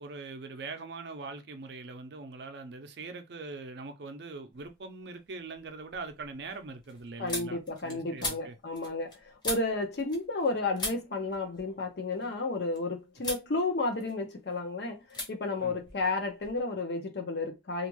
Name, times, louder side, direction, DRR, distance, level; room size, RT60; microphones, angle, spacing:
voice 1, 0.0-8.6 15.6-15.7, right 3 dB, 60° right, 0.5 m, -42 dB
sound 1, 4.5-5.1 5.4-10.5 10.8-12.8 13.2-13.5 13.9-14.6 15.1-15.3 15.6-16.6, left 2 dB, 20° left, 0.7 m, -40 dB
voice 2, 7.2-17.9, left 3 dB, 60° left, 0.6 m, -32 dB
2.4 x 2.2 x 3.0 m
head